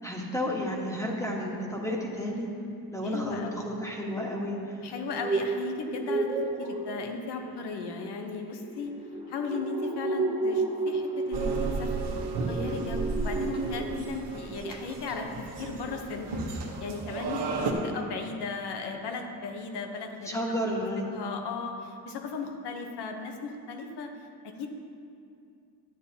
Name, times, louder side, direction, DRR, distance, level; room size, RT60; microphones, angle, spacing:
voice 1, 0.0-2.5 2.9-4.6 20.3-21.1, equal, 10° left, -2 dB, 1.3 m, -31 dB
voice 2, 3.0-3.7 4.8-6.3 6.6-8.9 9.3-15.3 15.6-16.4 16.8-20.4 20.9-24.1 24.4-24.7, left 4 dB, 80° left, 4 dB, 1.0 m, -36 dB
sound 1, 4.9-14.2 14.5-14.8 15.1-15.2, right 3 dB, 15° right, 0.8 m, -32 dB
sound 2, 11.3-17.7, right 4 dB, 80° right, 1.2 m, -34 dB
12.0 x 8.7 x 2.8 m, 2.4 s
cardioid pair, 115°, 40 cm